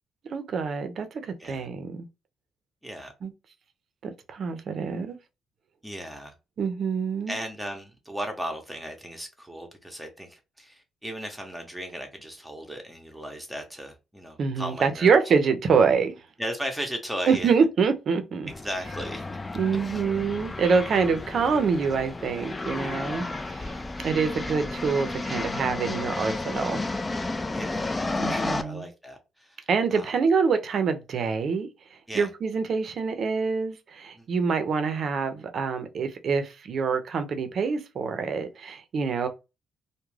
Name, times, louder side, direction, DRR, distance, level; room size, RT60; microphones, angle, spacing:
voice 1, 0.3-2.1 3.2-3.3 4.0-5.2 6.6-7.4 14.4-16.2 17.3-18.5 19.5-23.8 24.0-26.8 28.2-28.9 29.7-39.3, right 5 dB, 55° right, 0.5 m, -26 dB
voice 2, 2.8-3.1 5.8-6.3 7.3-15.2 16.4-17.5 18.5-19.3 22.8-23.0 27.5-30.1 32.1-32.3 34.2-34.3, equal, 5° right, 0.7 m, -36 dB
sound 1, 18.5-28.6, left 2 dB, 20° left, 0.3 m, -32 dB
2.3 x 2.1 x 3.1 m
cardioid pair, 90°, 0 cm